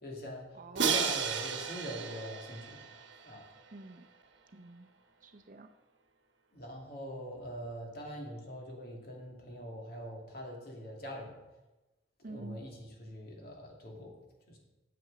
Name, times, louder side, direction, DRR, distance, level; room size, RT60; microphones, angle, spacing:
voice 1, 0.0-2.8 3.2-3.4 6.5-11.4 12.2-14.2 14.5-14.6, equal, 50° left, -1 dB, 2.5 m, -43 dB
voice 2, 0.5-1.1 3.7-4.1 4.5-4.9 5.2-5.7 12.2-12.6, right 3 dB, 40° right, 6 dB, 0.6 m, -46 dB
Crash cymbal, 0.8-3.7, right 6 dB, 65° right, 1.1 m, -33 dB
9.0 x 7.9 x 6.6 m, 1.1 s
head